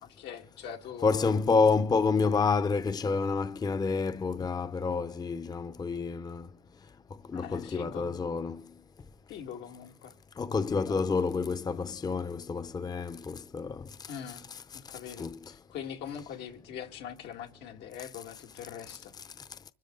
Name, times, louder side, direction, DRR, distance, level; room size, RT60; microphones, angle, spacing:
voice 1, 0.0-1.3 7.3-8.2 9.3-10.1 14.1-14.4 14.7-15.3 15.7-19.1, left 8 dB, 85° left, 1.9 m, -42 dB
voice 2, 1.0-6.5 7.3-8.6 10.4-13.9 14.5-14.6 14.9-15.4, left 4 dB, 25° left, 0.6 m, -29 dB
24.5 x 13.0 x 3.8 m
cardioid pair, 110°, 17 cm